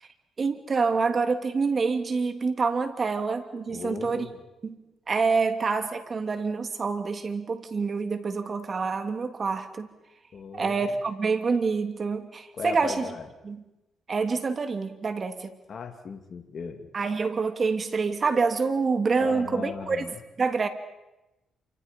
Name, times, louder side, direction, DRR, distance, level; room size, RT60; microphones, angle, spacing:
voice 1, 0.4-4.3 4.6-4.8 5.1-9.9 10.5-13.1 13.4-13.6 14.1-15.5 16.9-20.0 20.4-20.7, right 4 dB, 40° right, 7 dB, 2.8 m, -27 dB
voice 2, 3.7-4.4 10.3-11.0 12.5-13.3 15.7-16.9 19.2-20.2, left 5 dB, 50° left, 5 dB, 2.6 m, -37 dB
28.5 x 25.5 x 5.4 m, 0.97 s
cardioid pair, 90°, 0 cm